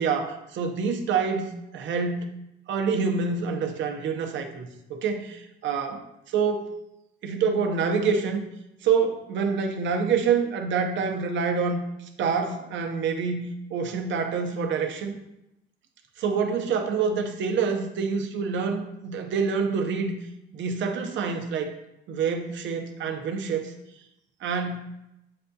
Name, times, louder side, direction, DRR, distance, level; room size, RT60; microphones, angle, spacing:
voice 1, 0.0-2.3 2.7-6.0 6.3-6.7 7.2-8.4 8.8-11.8 12.2-15.2 16.2-20.1 20.5-21.7 22.1-23.7 24.4-24.8, right 5 dB, 70° right, 4 dB, 0.6 m, -26 dB
7.5 x 2.6 x 2.2 m, 0.87 s
cardioid pair, 90°, 20 cm